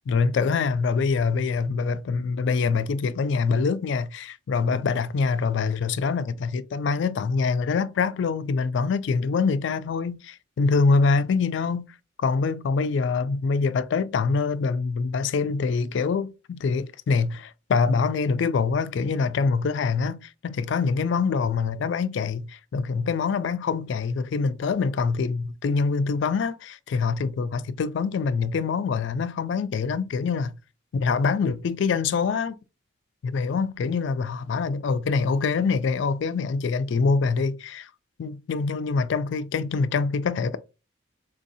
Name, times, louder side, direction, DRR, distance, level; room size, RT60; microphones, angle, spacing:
voice 1, 0.1-11.9 12.2-30.5 30.9-32.6 33.2-37.9 38.2-40.6, left 4 dB, 65° left, 0.3 m, -25 dB
3.8 x 2.6 x 2.6 m
head